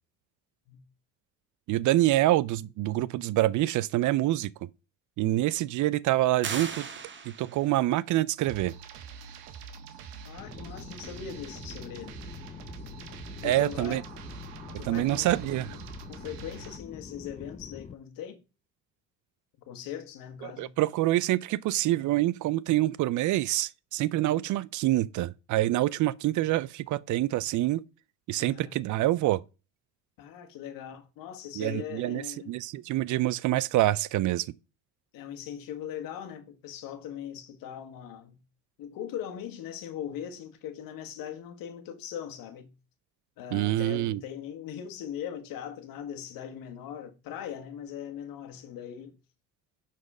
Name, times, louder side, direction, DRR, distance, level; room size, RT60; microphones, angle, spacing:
voice 1, 1.7-4.5 5.2-6.9 7.3-8.7 13.4-14.0 14.8-15.8 20.4-27.8 28.3-29.4 31.6-34.5 43.5-44.2, right 15 dB, 55° right, 0.5 m, -26 dB
sound 1, 6.4-7.8, right 6 dB, 30° right, 1.2 m, -37 dB
sound 2, 8.4-16.8, right 6 dB, 75° right, 1.3 m, -45 dB
voice 2, 10.2-12.2 13.4-14.0 14.7-15.7 16.1-18.4 19.7-20.7 24.0-24.5 28.4-28.8 30.2-32.5 35.1-38.4 38.8-42.7 43.4-49.2, left 9 dB, 65° left, 1.6 m, -40 dB
sound 3, 10.4-17.9, left 6 dB, 20° left, 0.5 m, -45 dB
11.0 x 4.2 x 4.9 m
supercardioid pair, 85°, 36 cm